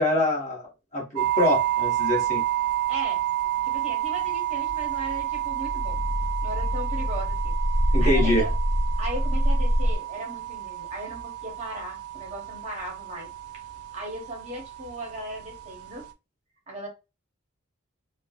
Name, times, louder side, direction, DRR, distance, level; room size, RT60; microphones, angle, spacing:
voice 1, 0.0-2.4 7.9-8.4, left 1 dB, 30° left, 1.0 m, -25 dB
sound 1, 1.2-16.1, right 14 dB, 80° right, 0.4 m, -30 dB
voice 2, 2.9-3.2 3.6-6.0 6.4-7.5 8.0-8.6 9.0-13.3 13.9-16.0 16.7-16.9, right 1 dB, 30° right, 0.7 m, -37 dB
sound 2, 4.7-10.0, equal, 45° left, 0.5 m, -25 dB
3.1 x 2.0 x 2.2 m
head